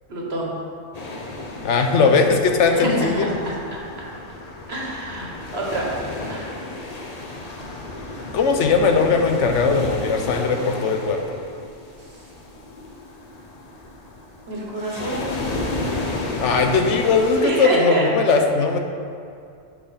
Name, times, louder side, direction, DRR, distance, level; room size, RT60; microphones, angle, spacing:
voice 1, 0.1-0.5 2.7-3.8 4.7-5.9 6.3-6.6 14.5-15.4 17.4-18.0, right 2 dB, 55° right, -3 dB, 1.6 m, -27 dB
sound 1, 0.9-17.5, left 2 dB, 40° left, 0.7 m, -33 dB
voice 2, 1.6-3.3 8.3-11.2 16.4-18.8, left 4 dB, 70° left, 4 dB, 1.0 m, -19 dB
6.2 x 6.2 x 5.0 m, 2.4 s
omnidirectional pair, 1.3 m